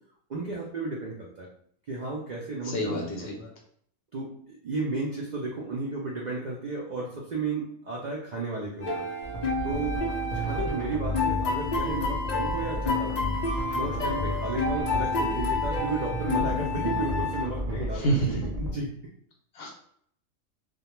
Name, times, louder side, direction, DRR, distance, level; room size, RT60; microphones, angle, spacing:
voice 1, 0.3-1.5 1.9-3.3 4.1-9.1 9.6-10.0 10.3-13.3 13.7-18.9, right 3 dB, 70° right, -3 dB, 0.4 m, -33 dB
voice 2, 2.6-3.5 17.9-18.4 19.5-19.7, right 1 dB, 65° left, 0 dB, 0.7 m, -28 dB
sound 1, 8.8-17.4, left 3 dB, 85° left, 0.3 m, -30 dB
sound 2, 9.2-18.7, equal, 40° right, 0.7 m, -33 dB
2.3 x 2.1 x 2.9 m, 0.63 s
omnidirectional pair, 1.4 m